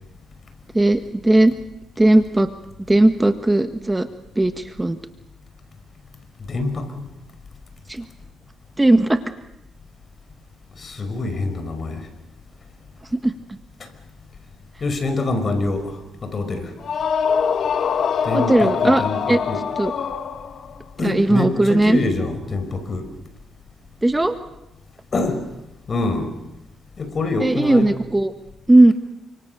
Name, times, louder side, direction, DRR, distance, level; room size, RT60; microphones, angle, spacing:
voice 1, 0.7-1.5 2.0-2.5 2.9-4.1 4.3-5.0 7.9-8.0 8.8-9.2 13.2-13.3 18.3-19.4 19.8-19.9 21.0-22.0 24.0-24.4 27.4-28.3 28.7-28.9, right 1 dB, 15° right, 1.5 m, -17 dB
voice 2, 6.5-7.1 10.8-12.1 13.8-13.9 14.8-16.7 18.2-19.7 21.0-23.1 25.1-25.5 25.9-26.3 27.0-27.9, left 2 dB, 45° left, 5.3 m, -25 dB
sound 1, 16.8-20.8, left 6 dB, 65° left, 1.5 m, -23 dB
29.0 x 26.0 x 6.8 m
cardioid pair, 80°, 0 cm